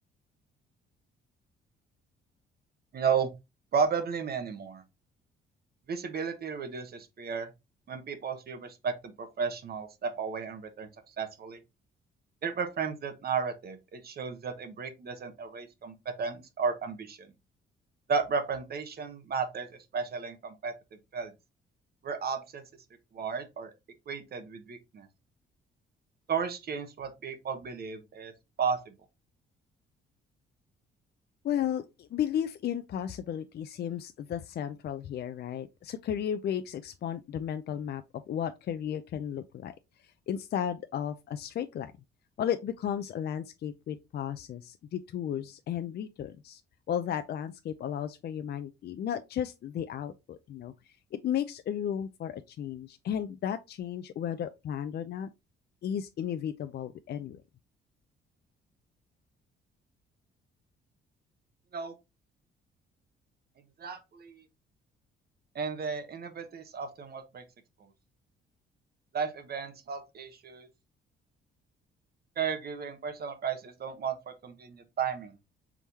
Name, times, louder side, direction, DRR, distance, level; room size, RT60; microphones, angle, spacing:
voice 1, 2.9-3.3 3.7-4.8 5.9-7.5 7.9-10.9 11.2-11.6 12.4-17.2 18.1-19.7 19.9-20.7 21.1-21.3 22.0-22.6 23.1-23.7 24.1-25.1 26.3-28.3 28.6-28.8 61.7-61.9 63.8-64.4 65.5-67.4 69.1-70.7 72.4-75.3, right 6 dB, 50° right, 1.1 m, -33 dB
voice 2, 31.4-39.7 40.0-41.9 42.4-46.6 46.9-55.3 55.8-57.4, left 9 dB, 55° left, 0.5 m, -34 dB
4.8 x 3.6 x 2.8 m
cardioid pair, 90°, 20 cm